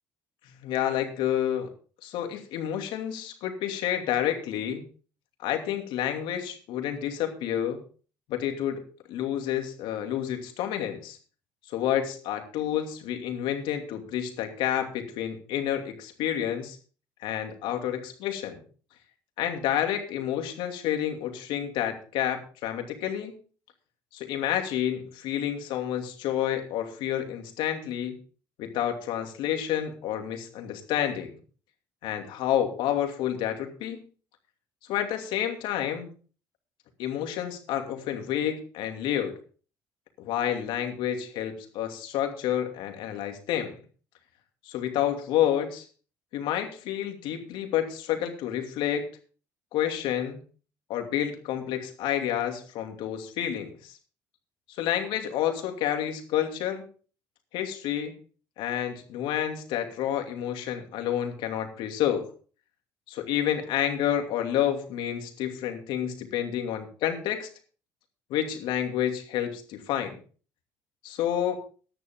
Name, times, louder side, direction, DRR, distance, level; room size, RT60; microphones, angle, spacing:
voice 1, 0.6-1.7 2.0-4.8 5.4-7.8 8.3-8.8 9.1-11.2 11.7-16.8 17.2-18.6 19.4-23.3 24.1-28.2 28.6-31.3 32.0-34.0 34.9-36.1 37.0-39.3 40.2-43.7 44.7-45.8 46.3-49.0 49.7-50.4 50.9-53.9 54.7-56.8 57.5-58.1 58.6-62.3 63.1-67.5 68.3-70.2 71.0-71.6, left 10 dB, 75° left, 5 dB, 2.7 m, -29 dB
14.5 x 11.0 x 3.7 m, 0.39 s
supercardioid pair, 80°, 8 cm